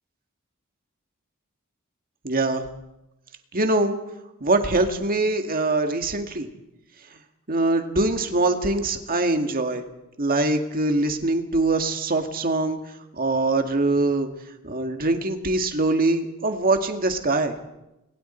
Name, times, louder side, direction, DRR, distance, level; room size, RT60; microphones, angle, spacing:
voice 1, 2.2-2.6 3.5-4.0 4.4-6.5 7.5-9.8 10.2-12.8 13.2-14.3 14.6-17.6, right 2 dB, 45° right, 5 dB, 2.0 m, -23 dB
29.5 x 21.5 x 4.5 m, 0.94 s
head